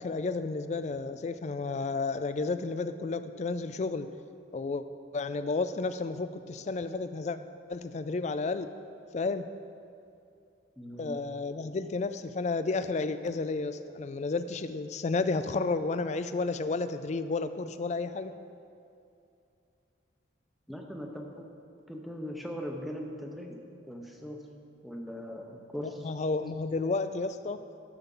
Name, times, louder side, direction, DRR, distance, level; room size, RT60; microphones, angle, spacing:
voice 1, 0.0-4.1 4.5-4.8 5.1-7.4 7.7-8.7 9.1-9.5 11.0-18.3 25.8-27.6, left 3 dB, 35° left, 11 dB, 0.3 m, -32 dB
voice 2, 10.8-11.2 20.7-21.5 21.9-23.6 23.9-24.5 24.8-26.1, equal, ahead, 1 dB, 0.7 m, -40 dB
13.0 x 7.1 x 3.8 m, 2.6 s
head